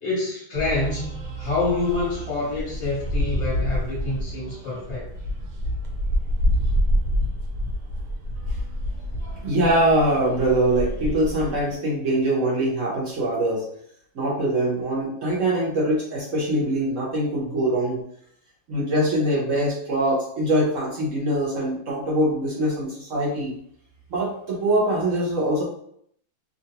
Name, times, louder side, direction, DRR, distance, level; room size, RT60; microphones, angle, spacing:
voice 1, 0.0-5.1, left 3 dB, 50° left, -6 dB, 1.0 m, -27 dB
sound 1, 0.5-11.7, equal, 80° right, 1.2 m, -27 dB
voice 2, 9.2-13.6 14.1-18.0 18.7-23.5 24.1-25.6, right 1 dB, 55° right, -5 dB, 1.1 m, -23 dB
2.8 x 2.5 x 2.8 m, 0.67 s
omnidirectional pair, 1.7 m